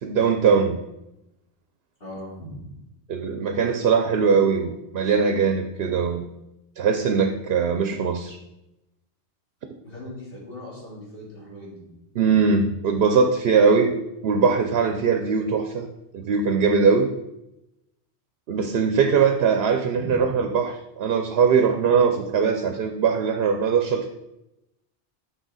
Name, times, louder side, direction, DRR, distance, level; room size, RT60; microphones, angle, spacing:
voice 1, 0.0-0.8 3.1-6.2 6.8-8.4 12.2-13.9 14.2-15.9 16.1-17.1 18.5-24.1, right 5 dB, 65° right, 5 dB, 0.8 m, -21 dB
voice 2, 2.0-2.8 9.8-11.9 19.8-20.4, left 1 dB, 55° left, -6 dB, 2.7 m, -39 dB
6.1 x 5.6 x 4.0 m, 0.89 s
omnidirectional pair, 1.2 m